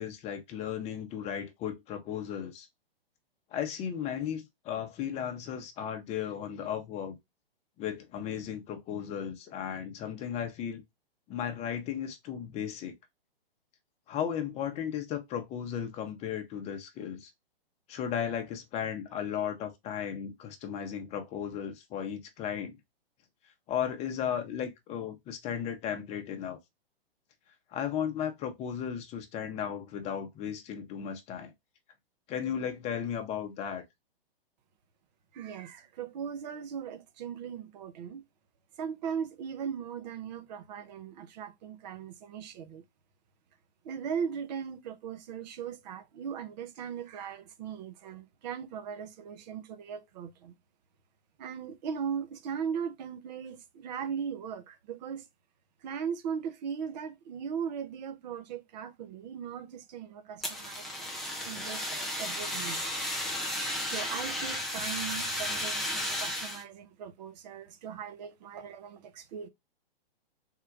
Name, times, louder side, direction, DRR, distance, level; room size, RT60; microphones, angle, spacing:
voice 1, 0.0-2.7 3.5-7.2 7.8-10.8 11.3-12.9 14.1-17.3 17.9-22.8 23.7-26.6 27.7-31.5 32.3-33.8, left 8 dB, 20° left, 0.8 m, -35 dB
voice 2, 35.3-38.2 38.8-42.8 43.8-50.5 51.4-55.2 55.8-61.1 61.4-62.8 63.8-69.5, right 7 dB, 45° right, 0.8 m, -38 dB
Fire, 60.4-66.6, left 1 dB, ahead, 0.5 m, -34 dB
3.7 x 2.4 x 4.6 m
hypercardioid pair, 130°, 30 cm